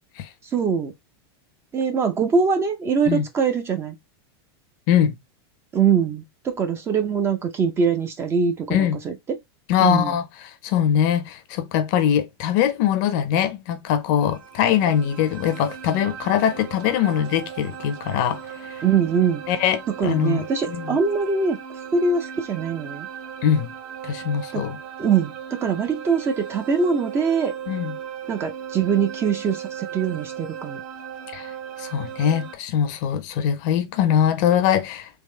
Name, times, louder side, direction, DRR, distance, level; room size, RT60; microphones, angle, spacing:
voice 1, 0.5-0.9 1.7-3.9 5.7-9.4 9.8-10.2 18.8-19.4 19.9-21.6 21.9-23.1 24.5-24.6 25.0-27.5 28.3-30.8, right 6 dB, 20° right, 0.6 m, -23 dB
voice 2, 9.7-10.3 10.6-18.8 19.5-20.8 23.4-23.7 24.0-24.8 27.7-27.9 31.3-31.5 31.8-35.1, left 9 dB, 45° left, 0.7 m, -22 dB
sound 1, 14.2-32.5, right 8 dB, 55° right, 1.1 m, -37 dB
3.5 x 3.1 x 3.2 m
supercardioid pair, 155°, 13 cm